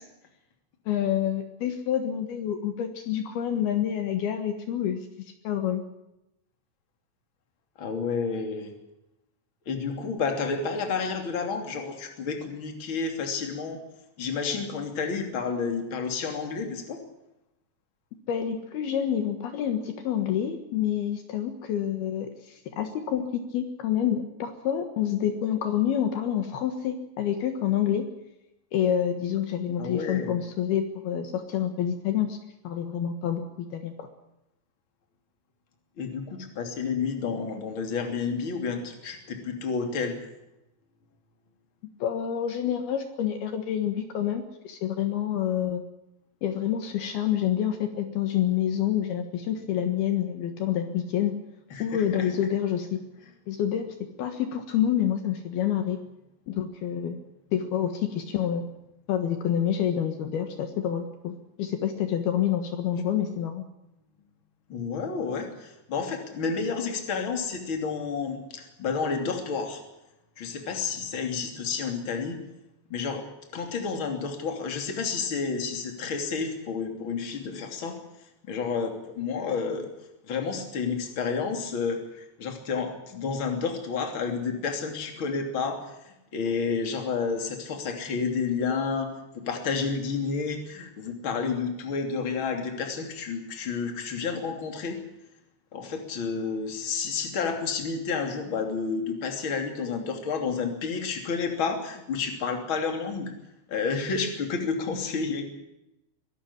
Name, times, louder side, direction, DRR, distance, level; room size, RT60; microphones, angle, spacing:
voice 1, 0.9-5.0 5.4-5.8 18.3-28.1 28.7-32.4 32.6-34.1 42.0-45.8 46.4-51.3 51.8-53.0 53.5-53.9 54.2-56.0 56.5-57.2 57.5-58.6 59.1-63.6, left 9 dB, 70° left, 7 dB, 3.2 m, -28 dB
voice 2, 7.8-8.7 9.7-13.8 14.2-17.0 29.8-30.3 36.0-40.2 51.7-52.3 64.7-69.8 70.4-72.4 72.9-73.3 73.5-78.0 78.5-79.9 80.2-95.0 95.7-103.3 103.7-105.5, left 5 dB, 30° left, 4 dB, 3.2 m, -30 dB
23.0 x 13.0 x 9.9 m, 0.90 s
omnidirectional pair, 4.9 m